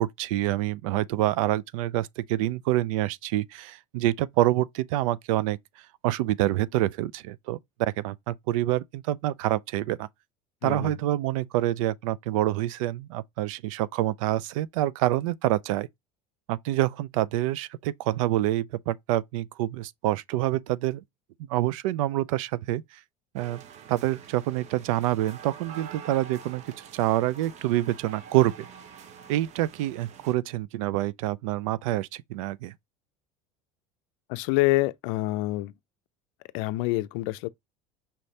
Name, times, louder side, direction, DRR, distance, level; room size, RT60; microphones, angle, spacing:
voice 1, 0.0-5.6 6.0-10.1 10.6-15.9 16.5-21.0 21.5-23.0 23.3-23.6 23.9-26.6 26.9-28.7 29.3-32.7, right 15 dB, 90° right, 0.4 m, -27 dB
voice 2, 10.6-10.9 34.3-35.7 36.5-37.5, left 19 dB, 75° left, 0.4 m, -26 dB
sound 1, 23.4-30.3, right 7 dB, 45° right, 0.8 m, -46 dB
5.6 x 3.2 x 2.7 m
supercardioid pair, 120°, 17 cm